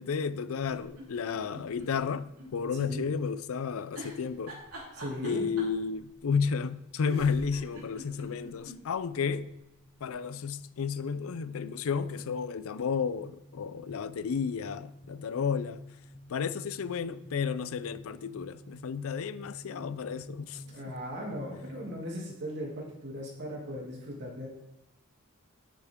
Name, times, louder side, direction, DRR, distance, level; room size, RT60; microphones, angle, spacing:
voice 1, 0.0-4.6 5.2-9.5 10.0-15.8 16.3-21.0, left 6 dB, 70° left, 0.4 m, -32 dB
sound 1, 0.6-2.5 2.8-2.9 3.9-5.8 6.7-6.8 7.0-8.8 9.2-9.3 9.5-9.6, equal, 75° right, 3.4 m, -44 dB
sound 2, 4.9-21.9, equal, 25° left, 1.2 m, -52 dB
voice 2, 4.9-5.5 20.6-24.5, equal, 55° right, 2.6 m, -38 dB
10.0 x 7.2 x 3.7 m
head